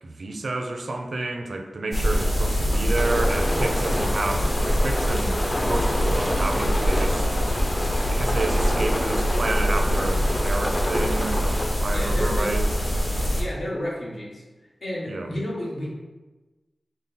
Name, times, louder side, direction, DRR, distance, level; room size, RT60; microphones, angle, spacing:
voice 1, 0.0-7.3 8.1-11.5 11.8-12.7 15.1-15.3, right 2 dB, 70° right, 4 dB, 0.4 m, -30 dB
sound 1, 1.9-13.4, equal, 55° left, 1.0 m, -24 dB
sound 2, 2.9-11.7, left 1 dB, 30° left, 0.5 m, -29 dB
voice 2, 11.9-12.6 13.4-14.4 14.8-15.9, equal, 75° left, -5 dB, 1.3 m, -31 dB
5.2 x 2.0 x 4.0 m, 1.2 s
wide cardioid pair, 80°, 0 cm